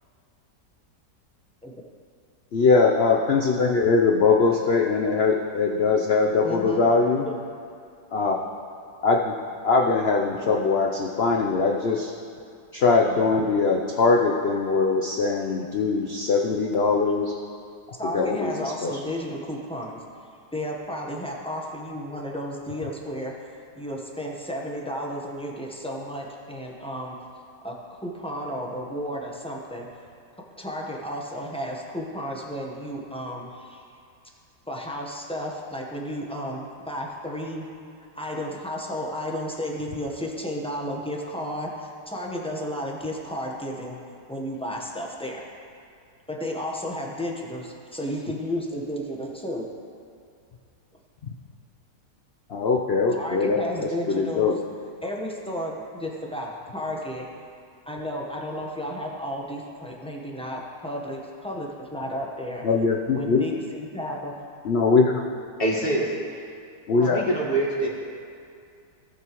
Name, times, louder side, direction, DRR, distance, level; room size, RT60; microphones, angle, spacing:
voice 1, 2.5-7.3 8.1-8.4 9.0-9.3 9.6-12.1 12.7-17.4 18.1-18.5 18.8-19.0 52.5-54.6 62.6-63.4 64.6-65.2 66.9-67.2, left 4 dB, 85° left, 0 dB, 0.5 m, -21 dB
voice 2, 6.4-6.9 7.3-7.4 18.0-20.0 20.5-23.3 23.7-27.2 27.6-29.9 30.6-33.8 34.7-37.6 38.1-44.0 44.3-45.5 46.3-49.6 53.1-54.5 55.0-57.3 57.9-62.6 63.1-64.4 67.0-67.2, equal, 5° left, -2 dB, 0.6 m, -33 dB
voice 3, 65.6-66.1 67.1-67.9, right 2 dB, 35° left, -4 dB, 1.7 m, -24 dB
18.0 x 6.6 x 3.0 m, 2.4 s
omnidirectional pair, 1.9 m